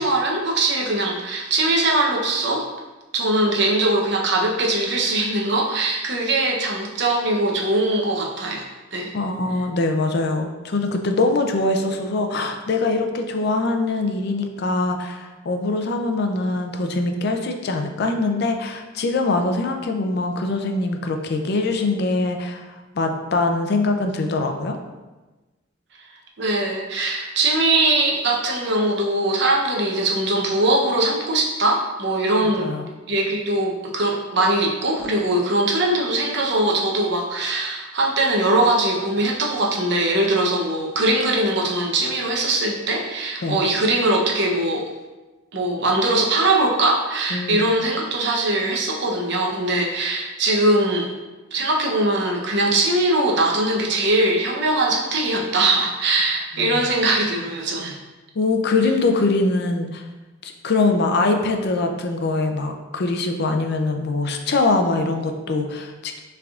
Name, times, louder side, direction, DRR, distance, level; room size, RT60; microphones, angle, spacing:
voice 1, 0.0-2.6 3.1-8.6 8.9-9.1 26.4-32.7 33.1-44.9 45.5-51.1 51.5-58.0, right 2 dB, 60° right, 0 dB, 0.7 m, -21 dB
voice 2, 9.1-22.7 22.9-24.8 32.4-32.9 43.4-43.6 47.3-47.6 56.6-56.8 58.4-60.0 60.4-66.2, left 3 dB, 55° left, 5 dB, 0.4 m, -23 dB
5.9 x 3.4 x 2.4 m, 1.2 s
head